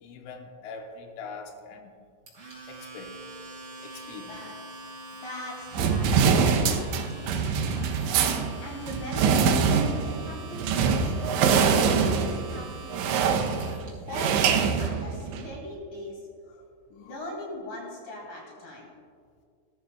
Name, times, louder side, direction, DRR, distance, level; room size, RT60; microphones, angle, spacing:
voice 1, 0.0-1.9 2.7-3.2 3.8-4.4 5.1-5.2 6.4-6.6 16.5-16.7 17.0-17.2, left 4 dB, 80° left, 3 dB, 3.3 m, -43 dB
Domestic sounds home sounds, 2.3-13.9, right 2 dB, 25° right, 2.8 m, -44 dB
voice 2, 5.2-11.1 11.7-16.2 16.9-18.9, left 1 dB, 50° left, -2 dB, 3.5 m, -40 dB
sound 1, 5.7-15.6, right 6 dB, 80° right, 2.9 m, -24 dB
19.0 x 14.0 x 2.3 m, 2.2 s
omnidirectional pair, 5.6 m